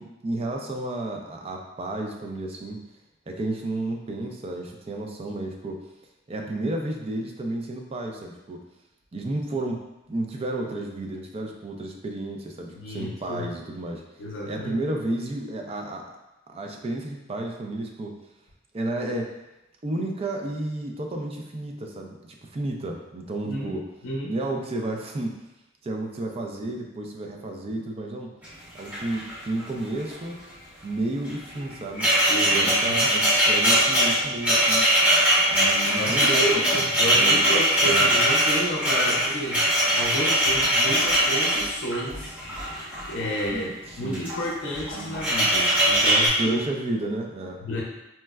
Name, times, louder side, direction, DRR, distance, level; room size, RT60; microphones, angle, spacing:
voice 1, 0.0-2.8 3.3-5.8 6.3-8.6 9.1-14.0 14.5-16.1 16.5-18.2 18.7-19.3 19.8-23.8 24.3-25.4 25.8-28.3 28.7-30.4 30.8-32.1 32.5-34.9 35.5-36.4 36.7-37.4 37.8-38.1 43.5-44.2 44.9-45.2 46.4-47.6, right 2 dB, 30° right, 2 dB, 0.4 m, -32 dB
voice 2, 12.7-13.5 14.2-14.8 23.4-23.8 24.0-24.3 32.3-33.1 36.0-42.4 43.1-46.6 47.6-47.8, equal, 75° left, -2 dB, 0.5 m, -31 dB
sound 1, 28.4-28.5 28.8-29.6 29.9-30.1 31.2-43.5 44.0-44.5 44.7-46.3, equal, 10° right, 0.9 m, -21 dB
4.2 x 2.1 x 2.3 m, 0.94 s
head